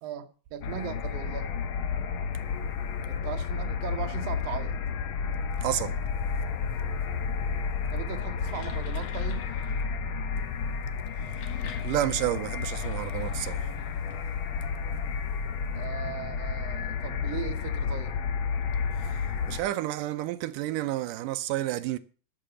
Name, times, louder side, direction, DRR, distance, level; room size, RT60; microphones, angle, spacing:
voice 1, 0.0-1.5 3.1-4.8 7.9-9.5 15.7-18.1, right 10 dB, 65° right, 1.8 m, -38 dB
sound 1, 0.6-19.6, left 6 dB, 85° left, 1.1 m, -31 dB
voice 2, 5.6-6.0 11.8-13.7 19.0-19.2 19.5-22.0, right 14 dB, 85° right, 2.2 m, -30 dB
sound 2, 8.3-9.9 11.0-14.1, left 7 dB, 55° left, 2.4 m, -48 dB
12.5 x 6.6 x 6.7 m
omnidirectional pair, 3.7 m